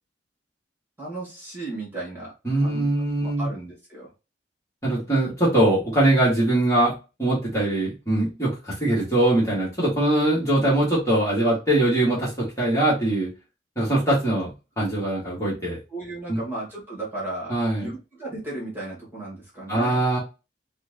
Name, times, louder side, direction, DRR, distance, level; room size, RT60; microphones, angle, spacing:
voice 1, 1.0-2.3 2.6-2.9 3.2-4.1 15.9-20.0, right 2 dB, 10° right, -6 dB, 2.0 m, -35 dB
voice 2, 2.4-3.5 4.8-6.9 7.2-13.3 13.8-15.8 16.3-16.4 17.5-17.9 19.7-20.2, right 1 dB, 15° left, -8 dB, 1.7 m, -22 dB
4.4 x 2.5 x 2.8 m, 0.28 s
head